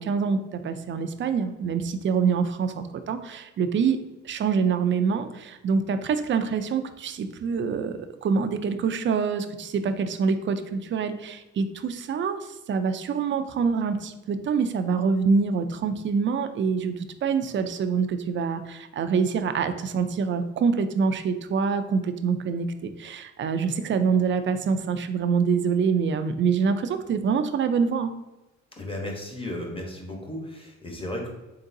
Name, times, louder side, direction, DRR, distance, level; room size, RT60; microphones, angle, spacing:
voice 1, 0.0-4.0 4.2-28.1, right 5 dB, 40° right, 9 dB, 0.4 m, -25 dB
voice 2, 28.8-31.3, left 1 dB, 20° left, 1 dB, 1.0 m, -34 dB
3.8 x 3.7 x 2.7 m, 1.0 s
cardioid pair, 90°, 30 cm